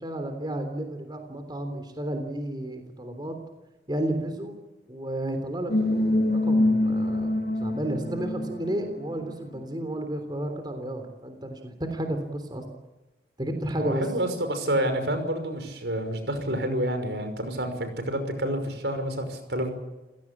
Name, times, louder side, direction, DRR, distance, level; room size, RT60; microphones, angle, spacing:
voice 1, 0.0-3.3 3.9-4.6 4.9-12.6 13.4-14.0, right 1 dB, 25° right, 6 dB, 3.4 m, -32 dB
sound 1, 5.7-9.6, left 1 dB, 60° left, 2.3 m, -25 dB
voice 2, 13.8-19.7, right 1 dB, 75° right, 8 dB, 5.8 m, -28 dB
29.5 x 17.0 x 8.8 m, 1.1 s
head